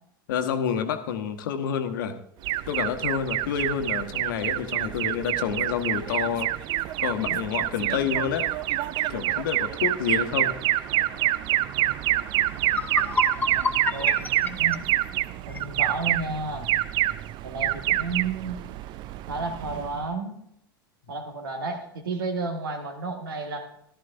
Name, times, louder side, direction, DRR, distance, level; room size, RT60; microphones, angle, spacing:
voice 1, 0.3-2.1 2.7-6.5 7.0-8.5 9.1-10.5, left 8 dB, 60° left, 8 dB, 1.2 m, -28 dB
Alarm, 2.4-20.1, right 15 dB, 40° right, 0.5 m, -27 dB
voice 2, 10.9-11.3 13.3-14.8 15.5-16.7 17.4-18.6 19.3-20.4 21.1-23.7, right 3 dB, 70° right, 5 dB, 1.8 m, -32 dB
sound 1, 12.2-12.3 12.6-15.7, left 3 dB, 15° left, 0.8 m, -29 dB
14.0 x 13.0 x 2.7 m, 0.73 s
figure-of-eight pair, 80°, 12 cm